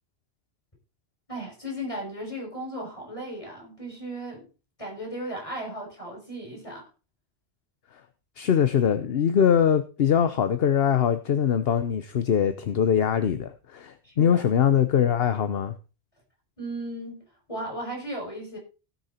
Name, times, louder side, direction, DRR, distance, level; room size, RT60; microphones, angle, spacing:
voice 1, 1.3-4.4 4.8-6.8 14.0-14.4 16.6-18.6, right 1 dB, 30° left, 6.7 m, -36 dB
voice 2, 8.4-15.7, left 8 dB, 70° left, 1.0 m, -22 dB
17.5 x 6.5 x 4.3 m
omnidirectional pair, 1.1 m